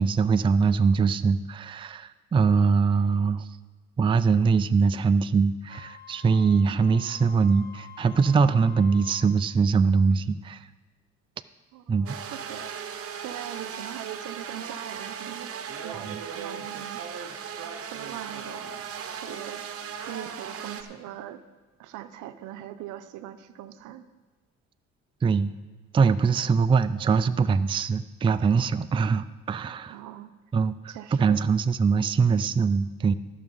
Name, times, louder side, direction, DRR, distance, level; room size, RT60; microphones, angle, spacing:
voice 1, 0.0-3.4 4.0-10.6 11.9-12.2 25.2-25.5 25.9-29.9 30.5-33.1, right 5 dB, 20° right, 12 dB, 0.3 m, -22 dB
Wind instrument woodwind instrument, 5.7-9.4, left 7 dB, 35° left, 0.8 m, -47 dB
voice 2, 11.7-12.7 13.2-15.5 15.8-17.0 17.8-19.7 20.1-21.4 21.8-24.0 29.9-30.3 30.9-31.4, right 12 dB, 85° right, 11 dB, 0.7 m, -41 dB
sound 1, 12.1-20.8, right 7 dB, 50° right, 1.0 m, -37 dB
13.5 x 6.1 x 5.4 m, 1.3 s
cardioid pair, 100°, 30 cm